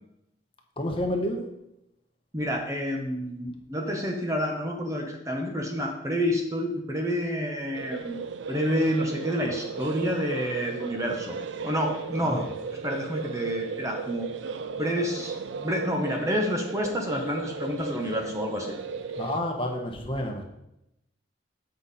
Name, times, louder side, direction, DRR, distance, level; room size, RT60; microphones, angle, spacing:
voice 1, 0.8-1.5 12.2-12.4 19.2-20.4, left 1 dB, 30° left, 2 dB, 0.9 m, -29 dB
voice 2, 2.3-8.2 8.5-11.4 11.6-12.5 12.8-14.3 14.8-18.7, equal, 15° right, 2 dB, 0.8 m, -29 dB
sound 1, 7.7-19.4, right 5 dB, 70° right, 0.4 m, -36 dB
8.0 x 5.6 x 4.1 m, 0.83 s
head